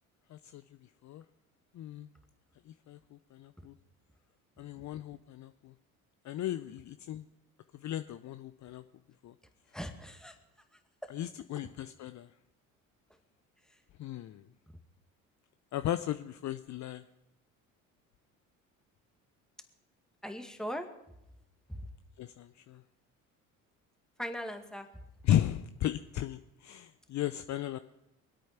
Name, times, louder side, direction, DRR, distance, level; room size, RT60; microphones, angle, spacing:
voice 1, 0.3-0.6 1.0-1.2 1.7-2.1 2.9-3.0 3.3-3.7 4.6-5.7 6.2-7.2 7.8-8.8 9.2-9.3 11.1-12.3 14.0-14.4 15.7-17.0 22.2-22.8 25.2-27.8, left 12 dB, 45° left, 11 dB, 0.6 m, -35 dB
voice 2, 9.7-10.4 20.2-20.9 21.7-21.8 24.2-24.9, equal, ahead, 6 dB, 2.0 m, -39 dB
23.5 x 8.5 x 5.9 m, 0.85 s
hypercardioid pair, 60°, 42 cm